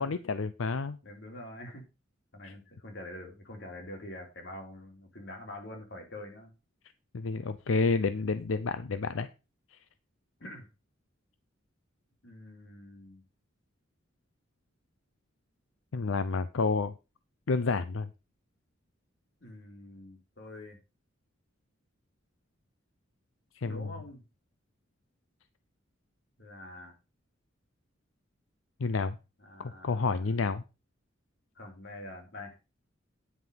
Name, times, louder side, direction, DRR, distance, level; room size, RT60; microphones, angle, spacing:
voice 1, 0.0-1.0 2.4-2.5 7.1-9.3 9.7-9.8 15.9-16.9 17.5-18.1 23.6-23.9 28.8-29.2 29.6-30.6, left 4 dB, 90° left, 12 dB, 0.6 m, -30 dB
voice 2, 1.0-1.9 2.3-6.5 10.4-10.7 12.2-13.2 19.4-20.8 23.6-24.2 26.4-26.9 29.4-30.3 31.5-32.6, left 1 dB, 60° left, 2 dB, 3.2 m, -45 dB
9.8 x 5.8 x 5.3 m, 0.29 s
head